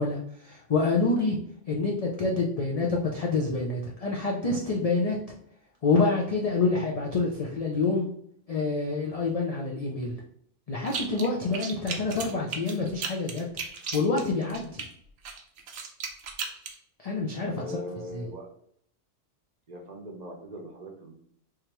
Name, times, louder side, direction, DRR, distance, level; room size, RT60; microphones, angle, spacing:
voice 1, 0.0-1.4 1.7-5.2 5.8-8.1 8.5-10.2 10.7-13.5 13.9-14.8 17.0-17.6 18.1-18.2, left 3 dB, 45° left, -3 dB, 0.5 m, -27 dB
sound 1, 10.8-11.3 11.5-14.9 15.2-16.7, right 5 dB, 80° right, 1.0 m, -35 dB
voice 2, 17.6-18.5 19.7-21.1, right 1 dB, 40° right, 0 dB, 0.8 m, -40 dB
3.6 x 3.2 x 2.9 m, 0.66 s
omnidirectional pair, 1.2 m